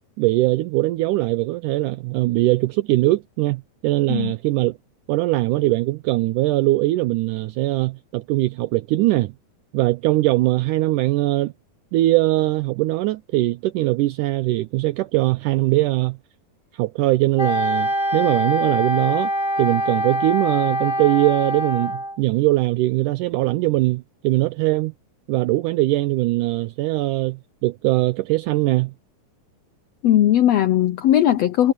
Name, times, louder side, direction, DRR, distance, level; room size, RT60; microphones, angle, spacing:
voice 1, 0.2-4.8 5.1-9.3 9.7-11.5 11.9-16.2 16.7-19.3 19.6-24.9 25.3-28.9, right 18 dB, 75° right, 2.1 m, -21 dB
Wind instrument woodwind instrument, 17.4-22.2, equal, 10° left, 2.9 m, -24 dB
voice 2, 30.0-31.7, left 11 dB, 85° left, 1.5 m, -18 dB
omnidirectional pair, 3.9 m